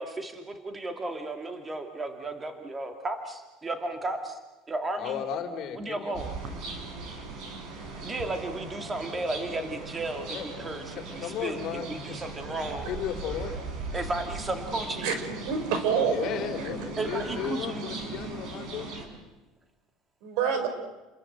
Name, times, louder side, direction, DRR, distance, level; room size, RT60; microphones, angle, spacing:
voice 1, 0.0-4.4 4.7-5.2 5.7-6.3 8.0-10.3 10.6-12.9 13.9-15.1 17.0-17.8, right 2 dB, 15° right, 5 dB, 2.2 m, -34 dB
voice 2, 5.0-6.2 10.3-10.5 11.0-12.6 12.9-13.5 15.9-18.9, left 8 dB, 50° left, 4 dB, 4.0 m, -35 dB
sound 1, 6.1-19.1, right 3 dB, 55° right, 6.7 m, -38 dB
voice 3, 15.0-16.2 17.1-17.3 20.2-20.7, right 6 dB, 75° right, 8 dB, 5.4 m, -27 dB
29.5 x 22.0 x 8.0 m, 1.1 s
cardioid pair, 135°, 0 cm